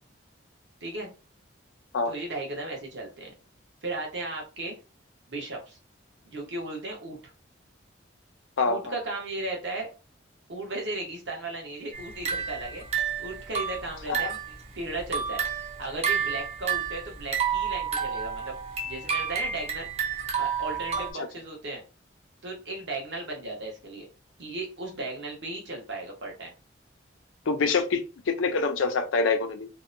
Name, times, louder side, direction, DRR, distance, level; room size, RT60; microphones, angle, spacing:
voice 1, 0.8-1.1 2.1-3.3 3.8-4.8 5.3-5.8 6.3-7.3 8.6-9.9 10.5-12.9 13.2-15.4 15.8-18.6 18.8-19.9 20.4-21.8 22.4-24.1 24.4-26.5, right 2 dB, 70° right, 0.9 m, -35 dB
voice 2, 8.6-8.9 14.1-14.3 21.2-21.3 27.5-29.7, left 4 dB, 85° left, 0.4 m, -26 dB
sound 1, 11.9-14.6 14.9-21.1, right 7 dB, 30° right, 0.4 m, -30 dB
2.7 x 2.1 x 2.5 m
head